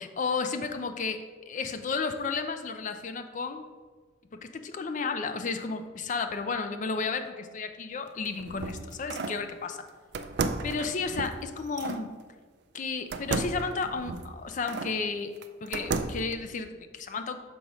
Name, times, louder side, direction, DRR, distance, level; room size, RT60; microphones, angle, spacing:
voice 1, 0.0-3.7 4.4-9.8 10.6-12.1 12.7-15.3 15.6-17.4, left 4 dB, 40° left, 8 dB, 0.4 m, -33 dB
sound 1, 8.1-9.4 10.1-12.0 13.1-15.0 15.4-16.3, right 4 dB, 55° right, 0.4 m, -34 dB
6.3 x 3.0 x 5.3 m, 1.4 s
head